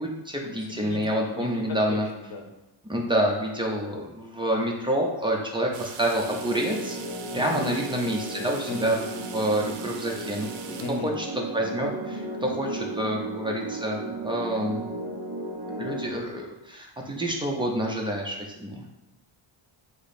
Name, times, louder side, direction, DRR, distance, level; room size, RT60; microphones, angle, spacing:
voice 1, 0.0-2.1 2.9-7.0 7.3-10.5 11.0-11.3 11.5-14.9 15.8-18.8, right 1 dB, 10° right, -1 dB, 0.5 m, -28 dB
voice 2, 0.7-2.5 7.3-7.8 8.7-9.0 10.7-11.1, left 3 dB, 45° left, 3 dB, 0.8 m, -36 dB
sound 1, 5.7-11.2, right 6 dB, 65° right, 0.6 m, -42 dB
sound 2, 6.2-16.1, right 2 dB, 45° right, 1.2 m, -35 dB
5.0 x 2.0 x 4.2 m, 0.97 s
cardioid pair, 125°, 49 cm